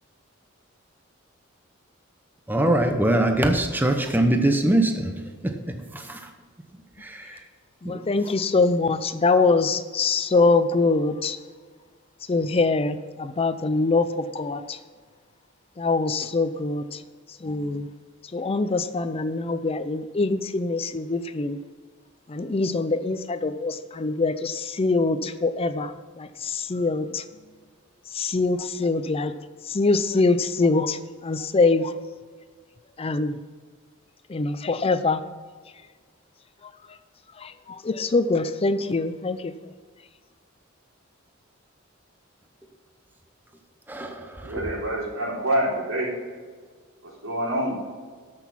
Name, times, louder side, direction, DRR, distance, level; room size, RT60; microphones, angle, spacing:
voice 1, 2.5-5.1 5.4-6.3 7.0-7.4 7.8-8.0 43.9-44.7, right 1 dB, 10° right, 4 dB, 0.8 m, -23 dB
voice 2, 7.8-11.4 12.3-14.8 15.8-17.0 17.4-17.9 18.3-21.6 22.3-25.9 26.2-27.2 28.1-29.3 29.7-31.9 33.0-33.4 34.3-35.2 37.4-39.5, left 3 dB, 30° left, 11 dB, 0.5 m, -24 dB
voice 3, 44.4-46.1 47.2-47.8, right 1 dB, 85° right, -3 dB, 3.4 m, -26 dB
12.5 x 6.2 x 5.8 m, 1.5 s
head